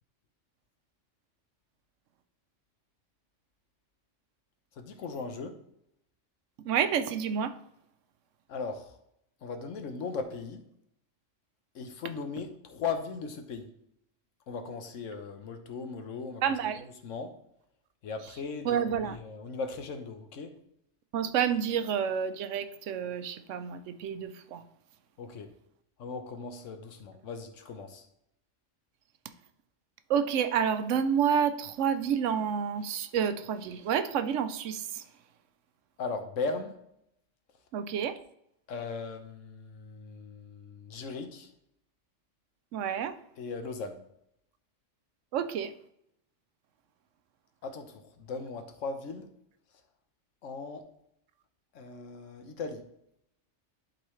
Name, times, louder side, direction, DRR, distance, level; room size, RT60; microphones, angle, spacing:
voice 1, 4.8-5.6 8.5-9.0 9.4-10.6 11.7-13.7 14.5-16.4 17.0-17.4 18.0-20.6 25.2-25.5 26.0-28.1 36.0-36.7 38.7-41.5 43.4-44.0 47.6-49.3 50.4-50.9 51.7-52.9, left 4 dB, 85° left, 1.2 m, -38 dB
voice 2, 6.6-7.5 16.4-16.8 18.6-19.2 21.1-24.6 30.1-35.0 37.7-38.2 42.7-43.2 45.3-45.7, right 8 dB, 80° right, 1.0 m, -29 dB
11.5 x 4.0 x 3.1 m
omnidirectional pair, 1.3 m